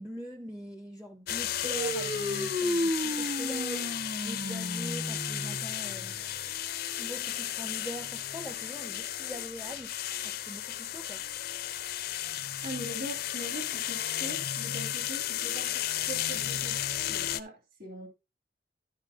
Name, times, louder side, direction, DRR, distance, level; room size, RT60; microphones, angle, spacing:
voice 1, 0.0-6.2 7.0-11.3, equal, 5° right, 0.5 m, -43 dB
sound 1, 1.3-17.4, left 12 dB, 55° left, 0.5 m, -34 dB
sound 2, 1.6-6.5, equal, 35° right, 1.5 m, -33 dB
voice 2, 12.6-16.8 17.1-18.1, equal, 55° right, 2.9 m, -42 dB
11.5 x 7.3 x 2.8 m
head